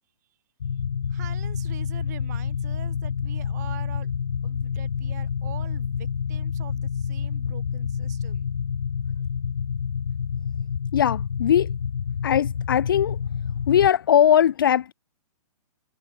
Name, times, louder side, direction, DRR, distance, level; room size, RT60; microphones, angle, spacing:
sound 1, 0.6-13.9, left 7 dB, 80° left, 1.9 m, -28 dB
voice 1, 1.1-4.1 4.4-8.5, right 15 dB, 25° right, 7.6 m, -44 dB
voice 2, 10.9-11.7 12.2-13.2 13.7-14.9, left 10 dB, 35° left, 1.0 m, -20 dB
hypercardioid pair, 180°, 20 cm